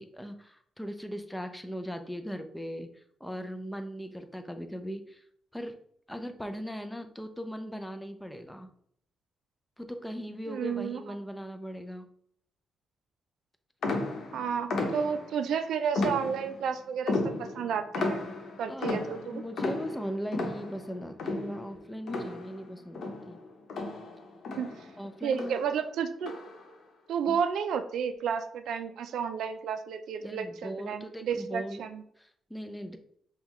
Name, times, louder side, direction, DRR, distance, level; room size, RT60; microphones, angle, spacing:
voice 1, 0.0-5.2 5.5-5.8 6.1-8.7 9.8-12.1 14.3-14.4 18.7-19.0 19.3-23.4 25.0-25.6 27.3-27.4 30.2-31.8 32.2-33.0, equal, 5° left, 7 dB, 0.5 m, -39 dB
voice 2, 10.5-11.0 14.3-18.2 18.6-19.4 24.6-24.9 25.2-26.3 27.1-32.0, right 7 dB, 80° right, 9 dB, 0.3 m, -32 dB
sound 1, 13.8-15.4 15.9-16.7 17.1-22.7 22.9-25.0 25.3-25.7 26.2-26.7, left 2 dB, 70° left, 0.9 m, -34 dB
5.5 x 2.3 x 3.1 m, 0.67 s
cardioid pair, 110°, 0 cm